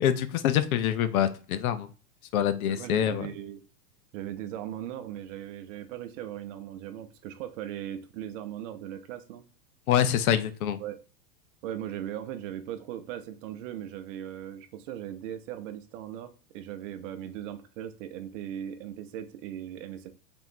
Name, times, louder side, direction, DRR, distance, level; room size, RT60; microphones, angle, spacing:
voice 1, 0.0-1.9 2.3-3.3 9.9-10.8, left 10 dB, 60° left, 12 dB, 0.6 m, -25 dB
voice 2, 2.7-3.6 4.1-9.4 10.8-11.0 11.6-16.3 16.5-20.1, right 11 dB, 50° right, 9 dB, 0.7 m, -38 dB
3.4 x 2.6 x 4.4 m, 0.37 s
hypercardioid pair, 95°, 50 cm